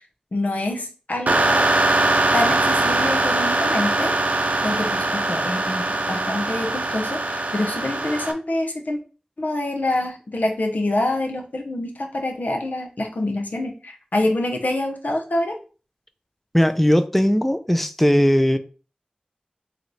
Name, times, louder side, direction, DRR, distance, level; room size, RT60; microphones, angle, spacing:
voice 1, 0.3-1.7 2.3-4.1 4.6-9.0 9.4-15.6, left 1 dB, 90° left, 0.7 m, -26 dB
sound 1, 1.3-8.3, right 2 dB, 75° right, 0.5 m, -21 dB
voice 2, 16.5-18.6, equal, 5° left, 0.4 m, -18 dB
3.1 x 3.1 x 3.9 m
wide cardioid pair, 45°, 3 cm